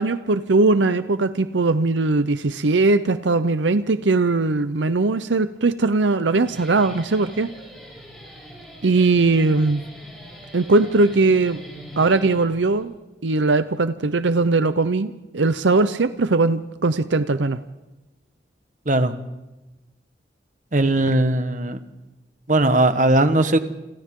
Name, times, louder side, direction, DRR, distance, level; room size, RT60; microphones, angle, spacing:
voice 1, 0.0-7.5 8.8-9.8 10.5-11.6 12.0-12.9 13.2-17.6, right 3 dB, 85° right, 12 dB, 0.7 m, -20 dB
Guitar, 6.2-12.8, equal, 5° left, 6.4 m, -42 dB
voice 2, 20.7-21.8 22.5-23.6, right 2 dB, 45° right, 9 dB, 1.3 m, -18 dB
29.0 x 26.5 x 3.8 m, 1.0 s
head